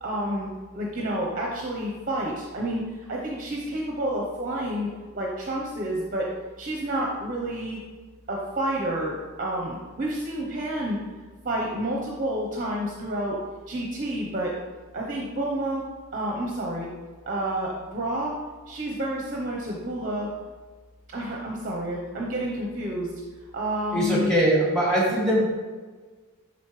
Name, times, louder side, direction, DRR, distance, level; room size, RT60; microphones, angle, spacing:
voice 1, 0.0-6.3 6.6-7.8 8.3-11.0 11.4-13.4 13.7-14.5 14.9-15.8 16.1-16.9 17.3-18.3 18.7-20.3 21.1-23.1 23.5-24.3, right 1 dB, 35° right, -2 dB, 0.9 m, -29 dB
voice 2, 23.9-25.5, right 1 dB, 5° left, -5 dB, 2.1 m, -21 dB
11.5 x 4.2 x 3.3 m, 1.4 s
head